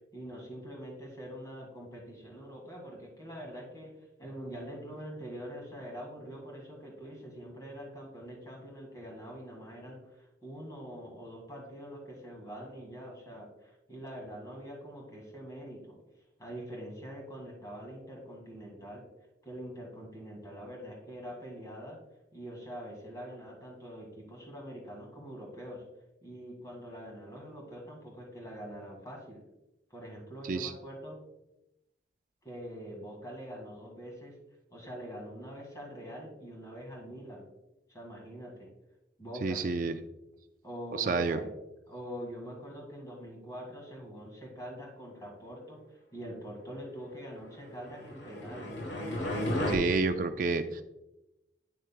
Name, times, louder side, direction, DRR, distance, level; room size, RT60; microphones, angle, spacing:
voice 1, 0.1-3.9 4.2-16.0 16.4-19.0 19.4-22.0 22.3-25.8 26.2-29.4 29.9-31.2 32.4-34.3 34.7-37.5 37.9-38.7 39.2-39.6 40.6-41.5 41.9-48.7, equal, 20° left, -1 dB, 1.8 m, -44 dB
voice 2, 39.4-40.0 40.9-41.4 49.7-50.8, right 4 dB, 45° right, 8 dB, 0.3 m, -29 dB
sound 1, 47.8-49.8, left 1 dB, 75° left, 1.4 m, -33 dB
8.8 x 6.4 x 2.2 m, 0.93 s
head